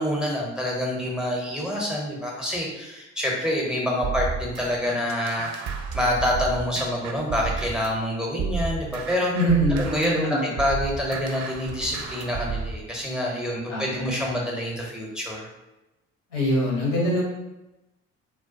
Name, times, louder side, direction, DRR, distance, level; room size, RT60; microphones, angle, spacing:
voice 1, 0.0-5.5 5.9-9.3 9.7-15.5, left 1 dB, ahead, -2 dB, 0.6 m, -27 dB
sound 1, 4.0-8.0 8.4-12.8, right 5 dB, 50° right, 0.4 m, -32 dB
voice 2, 9.3-10.5 13.7-14.0 16.3-17.2, equal, 80° left, -4 dB, 0.8 m, -23 dB
2.2 x 2.2 x 2.5 m, 0.98 s
figure-of-eight pair, 50°, 37 cm